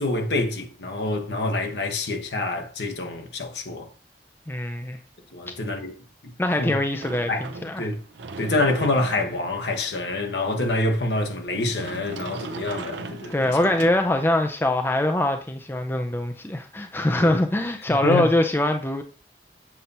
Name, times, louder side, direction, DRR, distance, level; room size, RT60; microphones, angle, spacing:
voice 1, 0.0-3.9 5.3-5.9 6.6-6.7 7.3-7.5 7.8-8.0 8.4-13.6 17.2-17.4 18.0-18.3, left 2 dB, 75° left, 1.2 m, -26 dB
voice 2, 4.5-5.0 6.4-7.9 13.3-19.0, left 1 dB, 10° left, 0.4 m, -23 dB
Sliding door, 7.0-14.5, right 3 dB, 85° right, 0.6 m, -39 dB
7.6 x 2.8 x 5.4 m
head